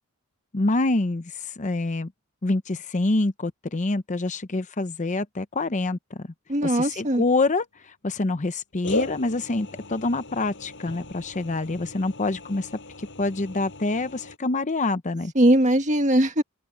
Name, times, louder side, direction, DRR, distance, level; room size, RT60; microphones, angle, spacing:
voice 1, 0.5-2.1 2.4-6.3 6.6-12.7 13.2-15.3, left 2 dB, 35° left, 0.7 m, -26 dB
voice 2, 6.5-7.2 15.3-16.4, right 1 dB, 35° right, 1.7 m, -20 dB
sound 1, 6.9-7.6 8.8-14.4, left 2 dB, 55° left, 6.6 m, -37 dB
open air
head